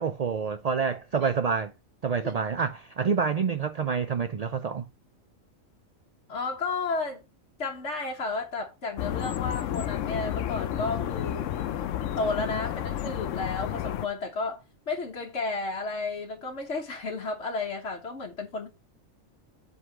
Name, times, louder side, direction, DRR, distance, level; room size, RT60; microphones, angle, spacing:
voice 1, 0.0-1.7 2.0-4.9, right 6 dB, 75° right, 0.3 m, -27 dB
voice 2, 6.3-7.2 7.6-11.5 12.2-18.7, left 3 dB, 60° left, 1.5 m, -32 dB
sound 1, 9.0-14.1, left 11 dB, 75° left, 1.0 m, -31 dB
7.9 x 4.0 x 5.8 m
omnidirectional pair, 1.3 m